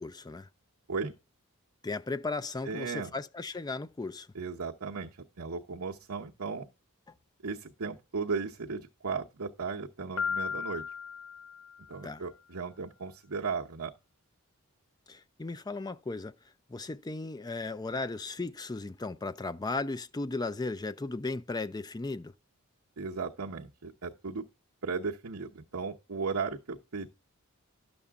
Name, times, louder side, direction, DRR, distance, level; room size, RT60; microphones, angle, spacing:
voice 1, 0.0-0.5 1.8-4.3 12.0-12.2 15.1-16.3 16.7-22.3, left 3 dB, 20° left, 0.4 m, -36 dB
voice 2, 2.6-3.1 4.3-6.7 7.4-10.8 11.9-13.9 23.0-24.5 24.8-27.1, right 4 dB, 70° right, 0.9 m, -36 dB
Piano, 10.2-12.1, left 6 dB, 80° left, 1.3 m, -36 dB
11.0 x 7.0 x 3.5 m
head